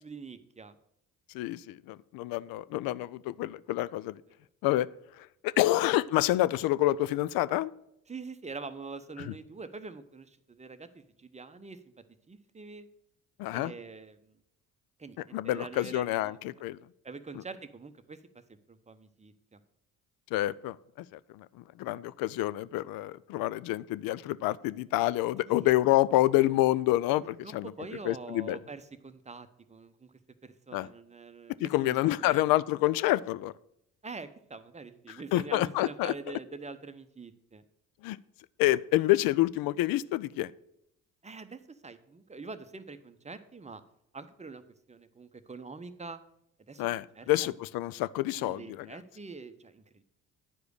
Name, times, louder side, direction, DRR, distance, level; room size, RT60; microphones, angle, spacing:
voice 1, 0.0-0.8 8.1-11.8 12.3-12.9 13.5-14.4 15.0-16.4 17.0-18.2 18.5-19.6 25.4-25.7 27.2-30.1 30.4-32.4 34.0-37.6 41.2-43.8 44.1-44.6 44.9-46.2 46.7-47.5 48.3-50.0, right 4 dB, 15° right, 10 dB, 0.8 m, -45 dB
voice 2, 1.3-4.2 4.6-4.9 5.4-7.7 13.4-13.7 15.3-16.8 20.3-20.8 21.1-27.7 28.0-28.6 30.7-30.9 31.6-33.5 35.3-36.1 38.0-38.2 38.6-40.5 46.8-48.9, left 16 dB, 55° left, 19 dB, 0.5 m, -28 dB
9.7 x 4.9 x 6.4 m, 0.77 s
figure-of-eight pair, 50°, 44 cm